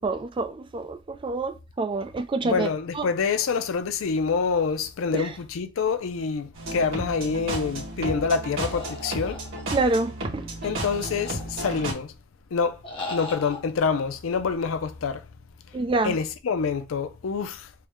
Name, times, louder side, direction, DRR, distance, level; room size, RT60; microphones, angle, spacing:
voice 1, 0.0-2.7 3.0-3.1 5.1-5.2 9.7-10.4 15.7-16.1, right 3 dB, 25° right, 0.3 m, -27 dB
voice 2, 2.4-9.4 10.6-12.1 12.5-12.8 13.1-15.2 16.0-17.6, left 5 dB, 85° left, 0.4 m, -26 dB
sound 1, 6.5-11.9, right 1 dB, 75° right, 2.1 m, -33 dB
sound 2, 8.6-9.9 10.6-11.8 12.8-13.6, left 2 dB, 25° left, 0.8 m, -38 dB
4.4 x 2.1 x 3.4 m
head